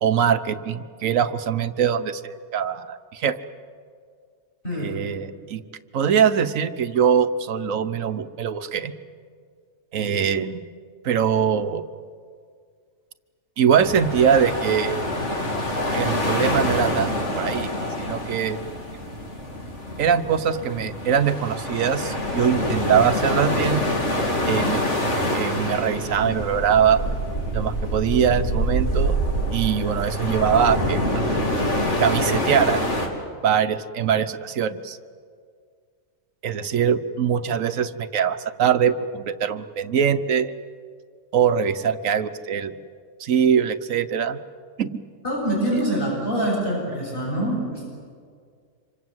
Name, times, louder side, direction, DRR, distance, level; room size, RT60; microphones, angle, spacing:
voice 1, 0.0-3.4 4.7-5.6 5.9-8.9 9.9-10.6 11.0-11.8 13.6-15.0 15.9-17.7 18.0-18.6 20.0-23.9 24.5-24.8 25.3-27.0 27.5-29.2 29.5-31.2 32.0-32.8 33.4-35.0 36.4-40.5 41.3-42.7 43.2-44.4 44.8-44.9 45.7-45.8, right 8 dB, 80° right, 10 dB, 1.4 m, -22 dB
sound 1, 13.8-33.1, equal, 60° left, 3.3 m, -26 dB
voice 2, 45.2-47.8, right 1 dB, 40° left, -4 dB, 7.2 m, -25 dB
26.5 x 25.5 x 7.9 m, 2.1 s
omnidirectional pair, 1.4 m